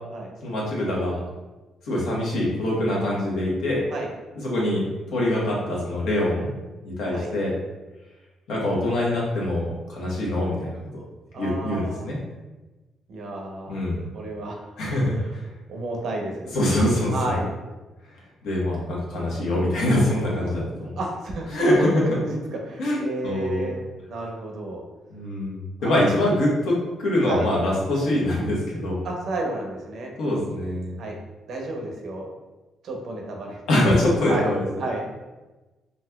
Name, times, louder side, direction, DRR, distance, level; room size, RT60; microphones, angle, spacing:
voice 1, 0.4-1.2 1.8-3.8 4.4-4.8 5.1-6.5 6.8-7.5 8.5-11.0 11.4-12.2 13.7-14.0 14.8-15.4 16.5-17.1 18.4-21.0 21.5-22.0 22.8-23.7 25.1-29.0 30.2-31.0 33.7-34.6, left 1 dB, 80° left, -4 dB, 1.0 m, -24 dB
voice 2, 11.3-12.1 13.1-13.8 14.1-14.7 15.1-15.4 15.7-16.6 17.1-17.6 20.3-20.7 21.0-21.8 22.2-22.4 22.6-24.8 25.8-25.9 27.2-27.5 29.0-30.1 31.0-31.2 31.5-32.3 32.8-33.6 34.0-34.4 34.8-35.0, right 2 dB, 65° right, 0 dB, 0.7 m, -32 dB
4.1 x 2.5 x 2.2 m, 1.1 s
cardioid pair, 90°, 0 cm